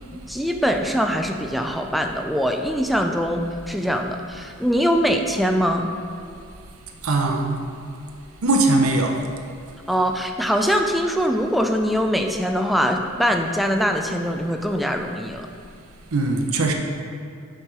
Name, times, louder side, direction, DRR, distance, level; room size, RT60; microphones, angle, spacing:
voice 1, 0.3-5.9 9.9-15.5, equal, ahead, 4 dB, 0.3 m, -22 dB
voice 2, 7.0-7.6 8.4-9.1 16.1-16.7, right 2 dB, 80° right, 2 dB, 0.6 m, -20 dB
6.4 x 4.5 x 4.7 m, 2.4 s
head